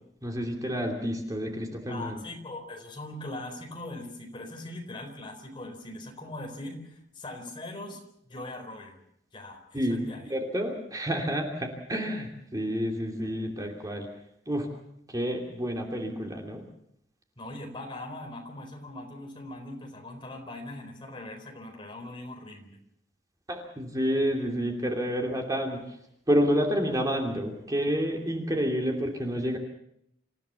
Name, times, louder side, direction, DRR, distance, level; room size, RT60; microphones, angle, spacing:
voice 1, 0.2-2.2 9.7-10.0 10.3-14.1 14.5-14.7 15.1-16.6 23.5-26.0 26.3-29.6, equal, 20° right, 1 dB, 2.9 m, -29 dB
voice 2, 1.9-8.0 8.3-9.0 9.3-10.3 17.4-22.8, left 1 dB, 25° left, 3 dB, 4.3 m, -41 dB
27.5 x 15.0 x 7.1 m, 0.74 s
head